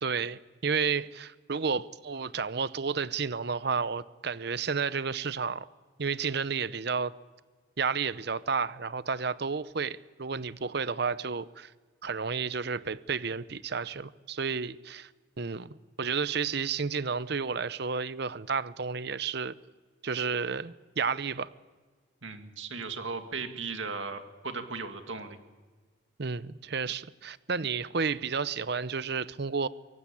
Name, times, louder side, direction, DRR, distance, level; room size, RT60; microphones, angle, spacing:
voice 1, 0.0-5.7 6.0-7.1 7.8-11.7 12.0-15.1 15.4-19.5 20.0-21.5 26.2-29.7, right 5 dB, 55° right, 0.7 m, -31 dB
voice 2, 22.2-25.4, right 4 dB, 70° right, 2.2 m, -37 dB
24.0 x 17.5 x 8.7 m
head